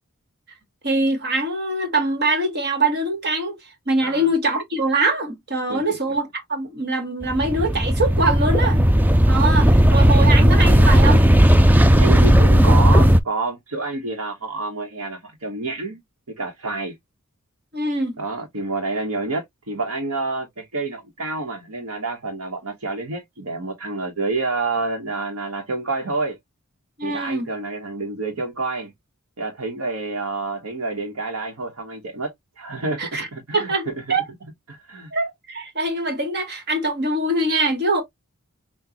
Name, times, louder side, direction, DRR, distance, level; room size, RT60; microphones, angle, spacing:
voice 1, 0.8-3.5 3.9-8.8 9.3-11.2 17.7-18.2 27.0-27.5 33.0-33.3 33.5-34.2 35.1-38.0, right 2 dB, 45° right, 1.3 m, -23 dB
sound 1, 7.2-13.2, equal, 10° right, 0.3 m, -14 dB
voice 2, 12.0-16.0 16.3-16.9 18.2-26.4 27.0-28.9 29.4-33.9 34.7-35.1, right 3 dB, 70° right, 1.1 m, -28 dB
6.0 x 2.3 x 2.8 m
head